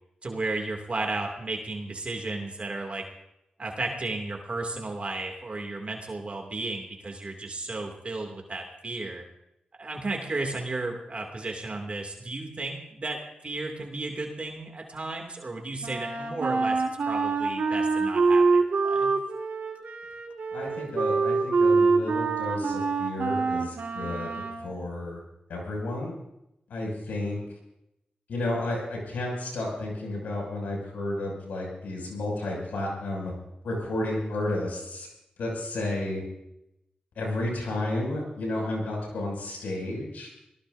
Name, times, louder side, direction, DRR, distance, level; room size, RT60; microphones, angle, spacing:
voice 1, 0.2-3.0 3.6-9.2 9.8-19.1, right 2 dB, 45° right, 2 dB, 2.6 m, -34 dB
Wind instrument woodwind instrument, 15.8-24.7, right 4 dB, 70° right, 2.2 m, -25 dB
voice 2, 20.5-25.2 25.5-26.1 26.7-27.4 28.3-33.3 33.6-35.1 35.4-36.2 37.1-40.3, left 1 dB, 90° left, -1 dB, 6.6 m, -32 dB
25.5 x 18.0 x 2.7 m, 0.84 s
cardioid pair, 50°, 3 cm